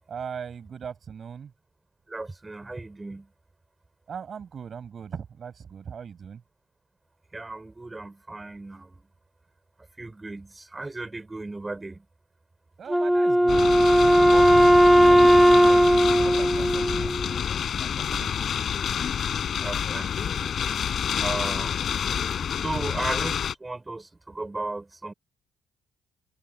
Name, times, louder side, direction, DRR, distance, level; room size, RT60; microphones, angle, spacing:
voice 1, 0.1-1.5 4.1-6.4 12.8-17.1 17.8-18.3, right 7 dB, 50° right, 6.6 m, -39 dB
voice 2, 2.1-3.3 7.3-9.1 10.0-12.1 18.2-18.5 19.2-21.8 22.1-25.1, right 2 dB, 20° right, 5.2 m, -36 dB
Wind instrument woodwind instrument, 12.9-17.4, equal, ahead, 1.0 m, -17 dB
sound 1, 13.5-23.5, left 8 dB, 60° left, 6.6 m, -28 dB
cardioid pair, 90°, 0 cm